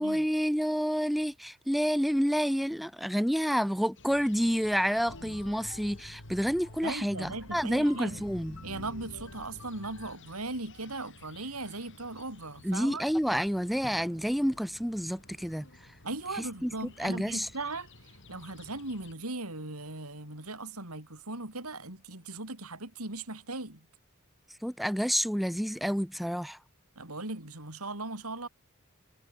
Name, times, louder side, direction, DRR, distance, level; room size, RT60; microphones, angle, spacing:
voice 1, 0.0-8.6 12.6-15.7 16.6-16.7 17.0-17.5 24.6-26.6, equal, ahead, 0.7 m, -29 dB
sound 1, 4.0-19.1, left 2 dB, 60° left, 7.8 m, -55 dB
sound 2, 5.1-10.2, left 1 dB, 80° left, 3.5 m, -47 dB
voice 2, 6.8-8.3 8.6-13.0 16.0-23.9 27.0-28.5, right 2 dB, 85° right, 5.6 m, -38 dB
Drum, 13.8-16.5, right 1 dB, 45° right, 5.8 m, -56 dB
head